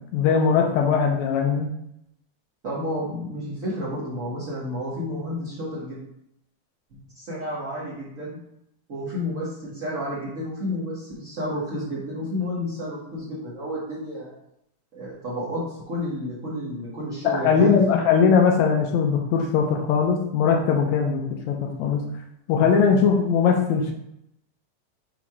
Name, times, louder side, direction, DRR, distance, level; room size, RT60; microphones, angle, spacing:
voice 1, 0.0-1.7 17.2-22.0 22.5-23.9, left 6 dB, 75° left, 3 dB, 1.9 m, -20 dB
voice 2, 2.6-6.0 7.1-8.4 8.9-14.3 14.9-18.0, left 1 dB, 45° right, -9 dB, 1.0 m, -31 dB
6.0 x 3.6 x 4.7 m, 0.79 s
omnidirectional pair, 3.6 m